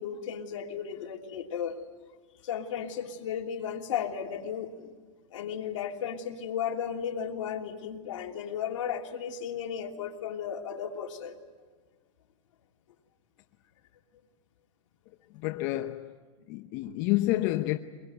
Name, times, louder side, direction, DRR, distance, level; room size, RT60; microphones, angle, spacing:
voice 1, 0.0-1.8 2.4-4.9 5.3-11.4, left 8 dB, 75° left, 3.1 m, -35 dB
voice 2, 15.3-16.2 16.5-17.8, left 17 dB, 45° left, 0.9 m, -29 dB
24.0 x 22.5 x 9.4 m
supercardioid pair, 140°, 16 cm